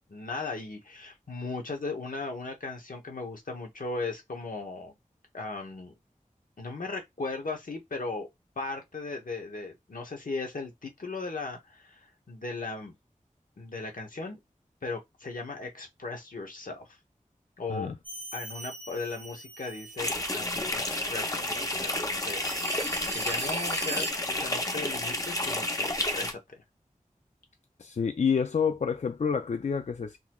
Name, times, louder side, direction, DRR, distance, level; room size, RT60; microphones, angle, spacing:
voice 1, 0.1-4.9 5.3-5.9 6.6-8.3 8.6-12.9 13.6-14.4 14.8-17.0 17.6-17.9 18.3-22.0 22.2-26.4, left 3 dB, 80° left, 1.0 m, -37 dB
sound 1, 18.0-20.9 21.6-21.8 22.4-24.1, right 3 dB, 65° right, 1.6 m, -41 dB
sound 2, 20.0-26.3, left 1 dB, 25° left, 0.7 m, -30 dB
voice 2, 27.8-30.2, left 6 dB, 60° left, 0.4 m, -28 dB
3.9 x 3.0 x 2.3 m
wide cardioid pair, 55°, 14 cm